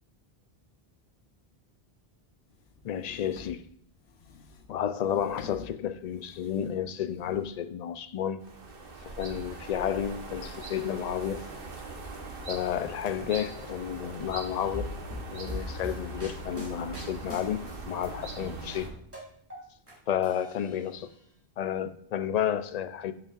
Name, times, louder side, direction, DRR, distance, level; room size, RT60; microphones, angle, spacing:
sound 1, 2.5-7.6, left 5 dB, 85° left, 1.0 m, -49 dB
voice 1, 2.8-3.6 4.7-8.4 9.0-11.5 12.5-14.9 15.3-18.9 20.1-21.1 21.6-23.1, left 9 dB, 55° left, 0.5 m, -31 dB
sound 2, 8.4-18.9, right 2 dB, 65° right, 1.2 m, -41 dB
sound 3, 14.7-18.1 18.4-19.9 20.2-21.1, equal, 15° right, 2.6 m, -41 dB
8.4 x 7.1 x 2.4 m
omnidirectional pair, 1.0 m